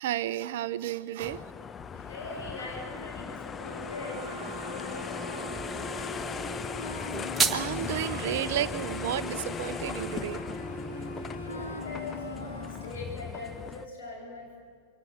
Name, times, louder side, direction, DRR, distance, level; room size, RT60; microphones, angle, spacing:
voice 1, 0.0-1.4 7.5-10.4, right 12 dB, 55° right, 15 dB, 0.7 m, -32 dB
sound 1, 1.2-13.9, left 6 dB, 20° left, 0.6 m, -38 dB
voice 2, 1.9-5.5 11.4-14.6, left 2 dB, 60° left, -1 dB, 7.8 m, -41 dB
sound 2, 3.6-12.9, equal, 80° left, 2.6 m, -41 dB
sound 3, 6.9-7.9, right 5 dB, 15° right, 1.4 m, -29 dB
23.5 x 17.5 x 8.4 m, 2.1 s
figure-of-eight pair, 90°, 0 cm